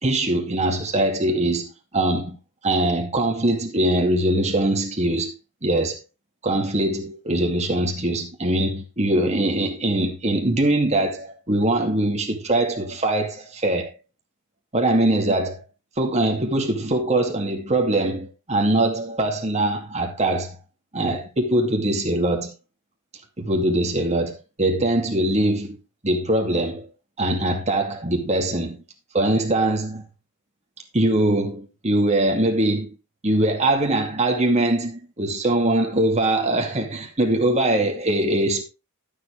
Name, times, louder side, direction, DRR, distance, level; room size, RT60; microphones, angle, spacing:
voice 1, 0.0-1.7 1.9-2.4 2.6-5.3 5.6-6.0 6.4-13.9 14.7-15.6 16.0-20.6 20.9-22.5 23.4-25.8 26.0-26.9 27.2-28.8 29.1-30.0 30.9-32.9 33.2-38.6, right 1 dB, 30° right, 2.4 m, -22 dB
12.5 x 7.5 x 3.6 m
head